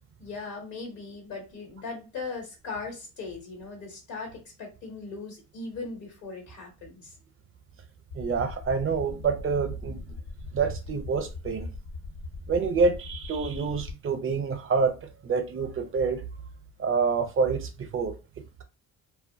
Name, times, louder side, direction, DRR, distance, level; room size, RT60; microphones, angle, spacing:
voice 1, 0.2-7.1, left 4 dB, 90° left, 1.1 m, -39 dB
sound 1, 8.1-13.9, left 3 dB, 60° left, 0.5 m, -40 dB
voice 2, 8.1-10.2 10.5-11.7 12.5-16.2 16.8-18.6, right 5 dB, 35° right, 0.6 m, -27 dB
2.2 x 2.1 x 2.6 m
supercardioid pair, 70°, 37 cm